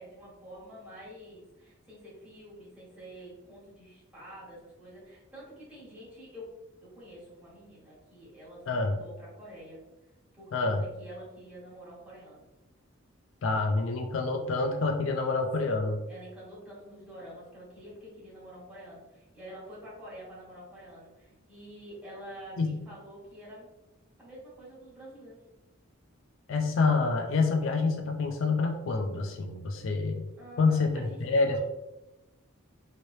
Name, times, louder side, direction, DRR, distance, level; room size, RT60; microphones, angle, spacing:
voice 1, 0.0-6.5 6.8-9.8 10.3-12.5 15.6-15.8 16.1-23.7 24.2-25.4 30.4-31.2 31.5-31.6, equal, 5° right, -9 dB, 1.5 m, -48 dB
voice 2, 8.7-9.0 10.5-10.8 13.4-16.0 22.6-22.8 26.5-30.2 30.6-31.6, left 3 dB, 65° left, 3 dB, 0.4 m, -27 dB
3.1 x 3.0 x 2.7 m, 1.0 s
head